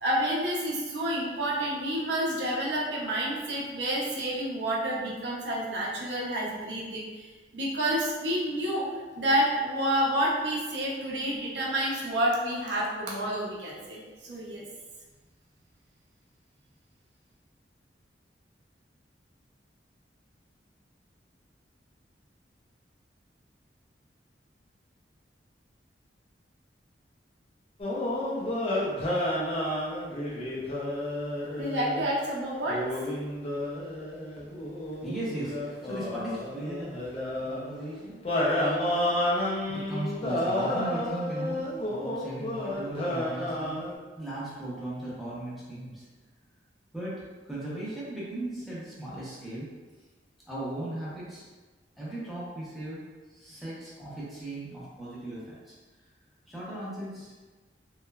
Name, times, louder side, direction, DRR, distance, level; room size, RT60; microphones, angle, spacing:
voice 1, 0.0-8.9 9.2-14.7 31.6-32.8, right 1 dB, 75° right, -4 dB, 0.6 m, -29 dB
sound 1, 27.8-32.1 32.7-37.6 38.2-43.9, left 1 dB, 35° left, 0.5 m, -31 dB
voice 2, 35.0-39.2 39.7-43.8 44.2-46.1 46.9-49.7 50.5-51.5 52.0-53.0 53.3-55.7 56.5-57.3, right 1 dB, ahead, -9 dB, 0.7 m, -38 dB
3.0 x 2.1 x 2.3 m, 1.3 s
head